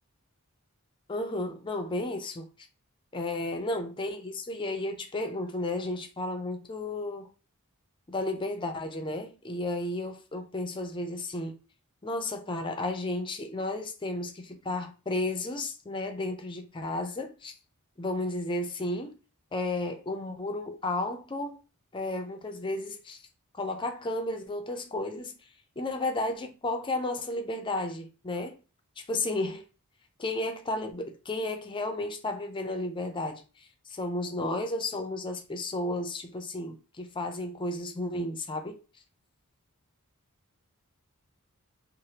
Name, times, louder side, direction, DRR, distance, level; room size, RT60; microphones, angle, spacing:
voice 1, 1.1-2.5 3.1-7.3 8.1-11.6 12.0-17.5 18.0-19.2 19.5-21.6 21.9-23.2 23.5-25.4 25.8-28.6 29.0-29.7 30.2-38.8, left 2 dB, 20° left, 0.4 m, -33 dB
3.3 x 2.0 x 2.8 m
head